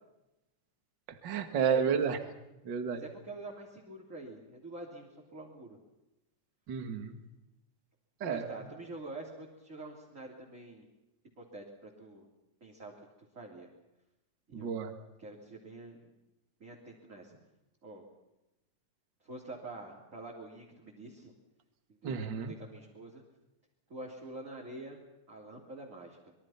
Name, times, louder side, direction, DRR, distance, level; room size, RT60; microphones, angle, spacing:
voice 1, 1.2-2.2 2.6-3.0 6.7-7.2 8.2-8.5 14.5-14.9 22.0-22.5, right 7 dB, 40° right, 7 dB, 2.3 m, -31 dB
voice 2, 2.9-5.8 8.2-10.9 11.4-12.3 12.6-12.9 13.2-13.7 14.5-14.8 15.2-16.1 16.6-17.4 17.8-18.0 19.2-21.3 21.9-23.2 23.9-25.0 25.3-26.2, right 2 dB, 25° right, -2 dB, 3.6 m, -46 dB
26.5 x 23.0 x 5.9 m, 0.95 s
omnidirectional pair, 3.5 m